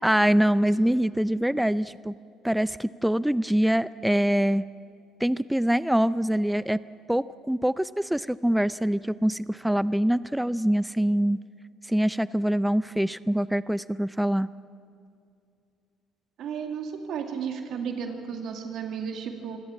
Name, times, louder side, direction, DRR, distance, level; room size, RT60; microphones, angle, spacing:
voice 1, 0.0-2.1 2.4-4.6 5.2-6.8 7.1-11.4 11.9-14.5, equal, 5° right, 18 dB, 0.5 m, -24 dB
voice 2, 16.4-19.6, right 7 dB, 60° right, 5 dB, 2.2 m, -33 dB
25.5 x 16.5 x 8.5 m, 2.4 s
hypercardioid pair, 55°, 0 cm